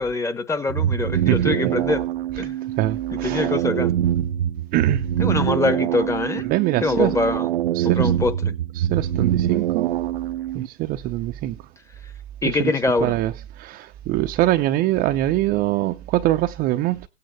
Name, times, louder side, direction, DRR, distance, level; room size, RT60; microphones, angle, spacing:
voice 1, 0.0-2.1 2.4-2.6 3.1-3.9 5.2-6.5 6.8-7.5 7.8-8.5 12.4-13.1, left 3 dB, 10° left, 1.2 m, -24 dB
sound 1, 0.7-10.7, right 11 dB, 55° right, 0.9 m, -24 dB
voice 2, 1.3-1.6 2.4-2.5 2.8-3.5 4.7-5.1 6.4-7.2 7.7-8.1 8.8-10.0 10.5-11.7 12.4-17.1, right 15 dB, 25° right, 0.8 m, -24 dB
16.5 x 8.8 x 8.1 m
hypercardioid pair, 135°, 34 cm